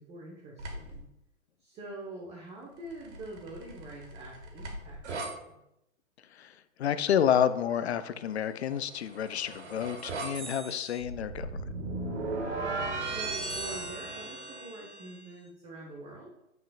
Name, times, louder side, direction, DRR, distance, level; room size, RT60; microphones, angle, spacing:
voice 1, 0.1-1.0 1.6-5.6 12.6-16.3, right 2 dB, 15° right, -3 dB, 1.1 m, -45 dB
sound 1, 0.6-1.0 2.9-5.3 8.8-15.2, right 2 dB, 60° right, 1.9 m, -37 dB
voice 2, 6.8-11.5, left 9 dB, 55° left, 13 dB, 0.5 m, -29 dB
9.0 x 5.8 x 2.3 m, 0.84 s
figure-of-eight pair, 125°, 40 cm